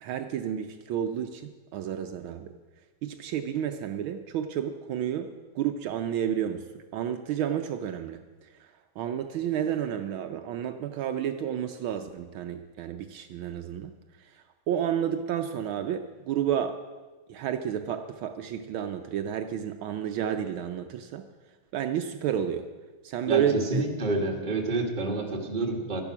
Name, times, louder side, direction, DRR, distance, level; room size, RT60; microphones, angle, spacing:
voice 1, 0.0-2.5 3.0-8.7 9.0-13.9 14.2-14.3 14.7-16.8 17.3-21.3 21.7-22.7 23.0-23.8, right 9 dB, 75° right, 7 dB, 1.4 m, -31 dB
voice 2, 23.3-26.0, right 2 dB, 25° right, 1 dB, 1.6 m, -28 dB
13.5 x 11.0 x 5.9 m, 1.3 s
omnidirectional pair, 2.3 m